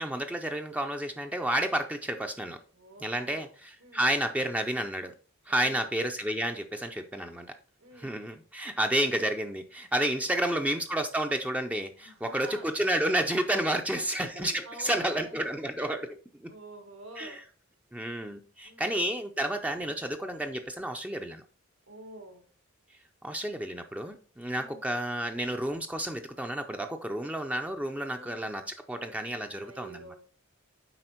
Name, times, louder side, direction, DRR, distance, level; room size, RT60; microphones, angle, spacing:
voice 1, 0.0-2.6 3.0-5.1 5.5-7.5 8.0-16.5 17.2-17.4 17.9-21.4 23.2-30.0, right 1 dB, 5° right, 5 dB, 0.4 m, -31 dB
voice 2, 2.7-3.5 3.8-4.0 5.5-5.9 7.8-8.2 10.3-10.8 12.0-12.7 13.7-13.8 14.2-15.6 16.5-17.4 18.6-19.0 21.9-22.4 24.5-24.8 28.1-28.5 29.6-30.2, right 2 dB, 80° right, 4 dB, 1.9 m, -48 dB
7.8 x 4.9 x 4.4 m, 0.42 s
head